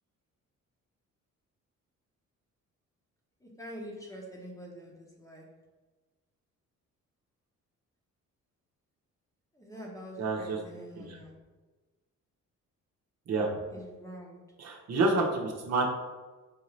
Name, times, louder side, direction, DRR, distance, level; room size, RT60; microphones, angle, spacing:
voice 1, 3.4-5.6 9.5-11.4 13.7-14.4, equal, 10° left, -3 dB, 0.9 m, -45 dB
voice 2, 10.2-10.6 11.0-11.1 13.3-13.5 14.6-15.9, right 3 dB, 55° right, -1 dB, 0.9 m, -28 dB
5.0 x 2.7 x 3.1 m, 1.3 s
cardioid pair, 90°, 30 cm